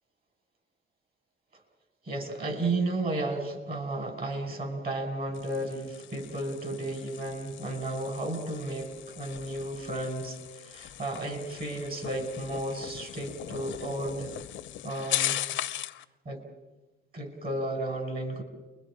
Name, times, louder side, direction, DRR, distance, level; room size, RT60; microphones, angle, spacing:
voice 1, 2.0-14.3 14.8-15.4 16.3-16.4 17.1-18.4, right 2 dB, 50° right, 4 dB, 5.7 m, -33 dB
sound 1, 5.3-16.0, left 12 dB, 75° left, 0.7 m, -38 dB
30.0 x 22.0 x 5.0 m, 1.1 s
cardioid pair, 90°, 20 cm